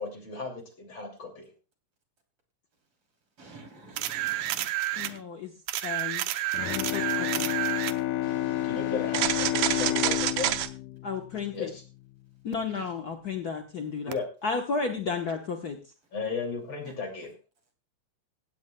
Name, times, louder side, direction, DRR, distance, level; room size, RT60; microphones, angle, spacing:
voice 1, 0.0-1.5 8.6-10.6 11.5-11.8 14.1-14.3 16.1-17.3, left 5 dB, 40° left, 2 dB, 3.2 m, -35 dB
voice 2, 3.4-4.6 4.9-5.2 8.2-9.3 16.8-16.9, right 2 dB, 45° right, 2 dB, 4.1 m, -48 dB
sound 1, 4.0-5.2 5.7-8.0 9.1-10.7 14.1-14.2, right 13 dB, 80° right, 2.1 m, -29 dB
voice 3, 5.0-5.5 5.8-6.2 6.8-7.5 11.0-11.7 12.4-14.2 14.4-15.8, left 5 dB, 70° left, 3 dB, 0.9 m, -32 dB
Bowed string instrument, 6.5-12.2, left 14 dB, 85° left, 2.2 m, -30 dB
17.0 x 16.0 x 2.2 m, 0.34 s
omnidirectional pair, 3.5 m